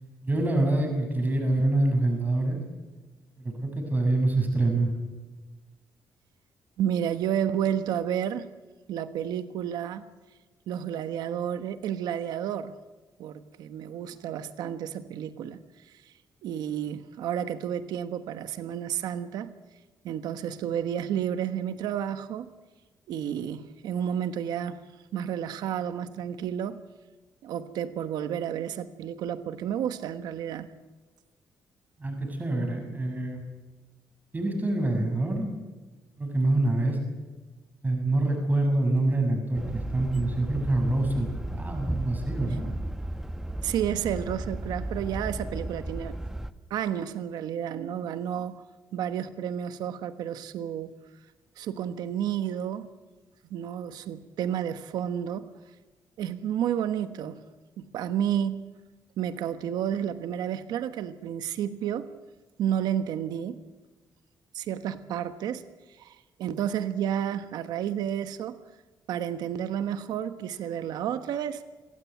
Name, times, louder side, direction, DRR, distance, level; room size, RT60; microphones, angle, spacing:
voice 1, 0.2-2.6 3.4-4.9 32.0-33.4 34.3-35.5 36.2-37.0 37.8-42.7, right 2 dB, 25° right, 6.8 m, -26 dB
voice 2, 6.8-8.5 8.9-10.1 10.7-12.8 13.2-16.1 16.4-19.5 20.0-22.5 23.1-24.8 25.1-26.8 27.4-30.7 43.6-46.2 46.7-48.6 48.9-51.0 51.6-52.9 53.5-55.5 56.2-57.4 57.8-58.6 59.2-62.1 62.6-63.6 64.5-65.6 65.9-68.6 69.1-71.6, right 9 dB, 90° right, 1.2 m, -31 dB
sound 1, 39.5-46.5, right 1 dB, 5° right, 1.2 m, -34 dB
26.0 x 16.5 x 9.3 m
cardioid pair, 95°, 7 cm